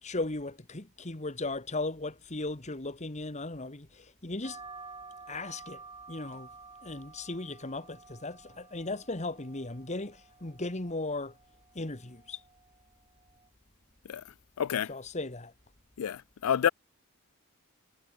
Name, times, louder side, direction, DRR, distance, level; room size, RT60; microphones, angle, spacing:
voice 1, 0.0-4.6 5.3-6.5 6.8-11.4 11.7-12.4 14.9-15.5, left 2 dB, 35° left, 1.7 m, -37 dB
sound 1, 4.4-13.5, right 4 dB, 20° right, 2.2 m, -51 dB
voice 2, 14.6-14.9 16.0-16.7, left 8 dB, 85° left, 0.4 m, -28 dB
head